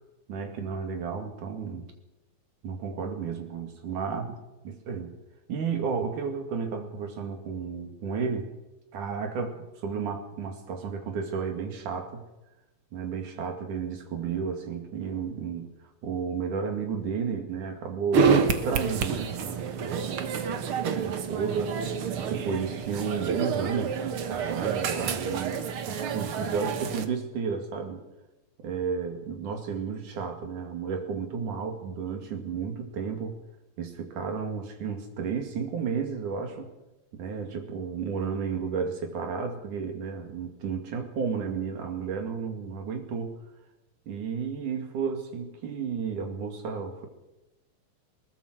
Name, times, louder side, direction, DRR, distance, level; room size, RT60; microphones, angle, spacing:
voice 1, 0.3-1.9 2.6-4.3 4.7-5.1 5.5-8.5 8.9-12.2 12.9-15.7 16.0-20.3 21.0-21.8 22.2-28.1 28.6-33.4 33.8-36.7 37.1-43.4 44.1-47.1, right 6 dB, 75° right, 5 dB, 3.8 m, -32 dB
sound 1, 18.1-27.1, right 6 dB, 55° right, 1.8 m, -28 dB
21.5 x 19.5 x 6.3 m, 1.0 s
omnidirectional pair, 3.6 m